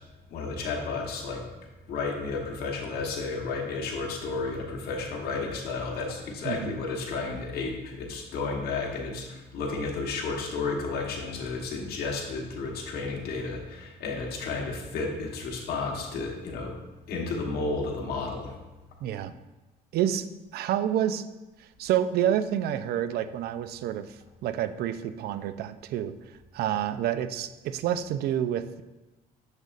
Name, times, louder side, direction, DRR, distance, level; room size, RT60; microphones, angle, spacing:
voice 1, 0.3-1.4 1.9-16.7 17.1-18.6, left 4 dB, 70° left, -1 dB, 1.2 m, -32 dB
voice 2, 6.4-6.8 19.0-19.3 19.9-21.3 21.6-28.8, right 10 dB, 70° right, 12 dB, 0.4 m, -29 dB
6.6 x 6.4 x 2.4 m, 1.1 s
cardioid pair, 110°, 17 cm